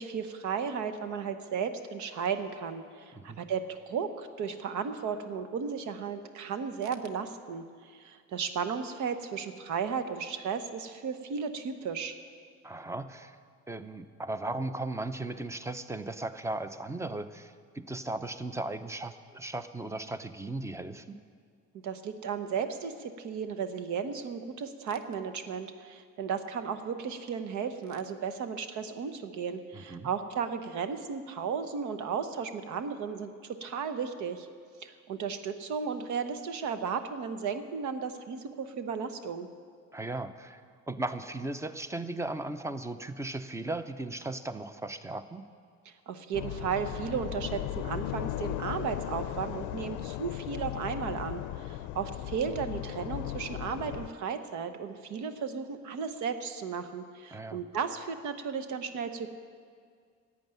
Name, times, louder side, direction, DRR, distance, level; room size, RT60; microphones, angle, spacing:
voice 1, 0.0-12.1 21.8-34.5 34.8-39.5 45.8-59.3, right 6 dB, 75° right, 9 dB, 1.1 m, -35 dB
voice 2, 12.6-13.4 13.7-21.2 29.7-30.1 39.9-40.6 40.9-45.4 57.3-57.6, right 2 dB, 10° right, 11 dB, 0.7 m, -37 dB
sound 1, 46.3-54.1, left 14 dB, 85° left, 0.5 m, -37 dB
11.5 x 8.3 x 9.3 m, 2.1 s
cardioid pair, 100°, 30 cm